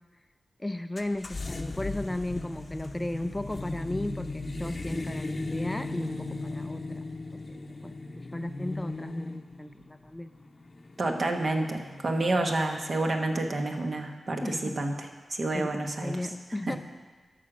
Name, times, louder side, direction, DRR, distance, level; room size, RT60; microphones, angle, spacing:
voice 1, 0.6-7.0 7.3-10.3 14.4-14.7 15.5-16.8, left 1 dB, 15° left, 10 dB, 0.4 m, -35 dB
sound 1, 1.0-13.1, left 2 dB, 35° left, 0.7 m, -37 dB
voice 2, 11.0-16.2 16.7-16.8, right 2 dB, 55° right, 3 dB, 1.3 m, -29 dB
12.5 x 6.5 x 6.3 m, 1.3 s
wide cardioid pair, 90°, 0 cm